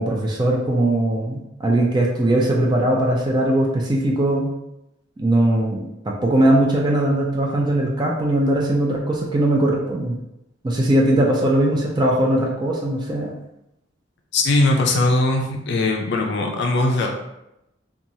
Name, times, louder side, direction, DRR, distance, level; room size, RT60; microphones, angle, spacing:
voice 1, 0.0-4.5 5.2-5.8 6.1-10.2 10.6-13.3, right 1 dB, 25° right, -2 dB, 0.3 m, -20 dB
voice 2, 14.3-17.1, left 2 dB, 60° left, 2 dB, 0.4 m, -20 dB
2.9 x 2.3 x 2.6 m, 0.87 s
head